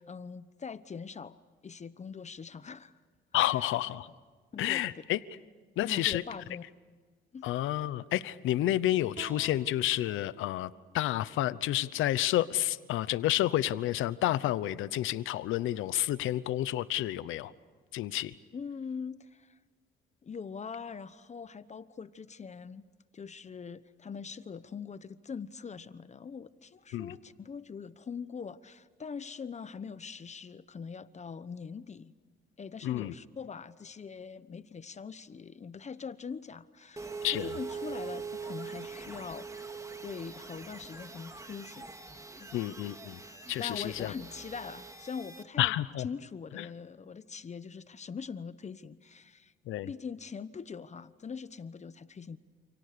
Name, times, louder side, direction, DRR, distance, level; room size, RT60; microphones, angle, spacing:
voice 1, 0.0-1.4 1.6-2.9 3.6-3.7 4.5-5.0 5.8-6.6 7.3-7.5 18.5-19.6 20.2-22.9 23.1-32.1 32.6-39.7 40.0-41.9 42.4-42.8 43.6-49.5 49.8-52.4, left 6 dB, 35° left, 14 dB, 1.0 m, -42 dB
voice 2, 3.3-4.1 4.6-5.2 5.8-6.2 7.4-17.5 17.9-18.3 26.9-27.1 32.8-33.1 37.2-37.5 42.5-43.2 43.5-44.1 45.6-46.1 46.5-46.7 49.7-49.9, left 14 dB, 85° left, 17 dB, 0.9 m, -30 dB
sound 1, 9.1-12.3, right 5 dB, 40° right, 4.6 m, -53 dB
sound 2, 37.0-45.4, right 5 dB, 15° right, 2.5 m, -43 dB
29.0 x 29.0 x 6.8 m, 1.5 s
cardioid pair, 90°, 20 cm